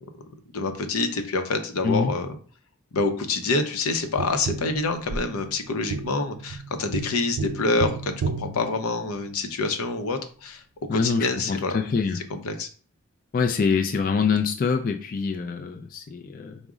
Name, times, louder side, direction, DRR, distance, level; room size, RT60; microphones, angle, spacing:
voice 1, 0.5-2.4 2.9-10.6 10.9-11.8 12.1-12.7, left 3 dB, 85° left, 6 dB, 0.6 m, -27 dB
Tap, 4.2-9.5 12.1-12.2, right 4 dB, 85° right, 0.4 m, -33 dB
voice 2, 10.9-12.3 13.3-16.6, left 5 dB, 40° left, 4 dB, 0.3 m, -25 dB
4.9 x 2.0 x 3.6 m, 0.42 s
head